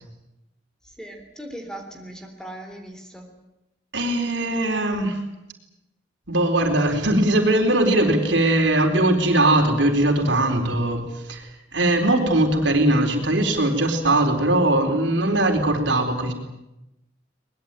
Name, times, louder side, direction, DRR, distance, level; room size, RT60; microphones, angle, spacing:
voice 1, 0.8-3.3, right 1 dB, 5° left, 4 dB, 3.6 m, -39 dB
voice 2, 3.9-5.2 6.3-16.3, right 1 dB, 70° right, 4 dB, 4.2 m, -20 dB
23.0 x 21.0 x 9.0 m, 0.91 s
head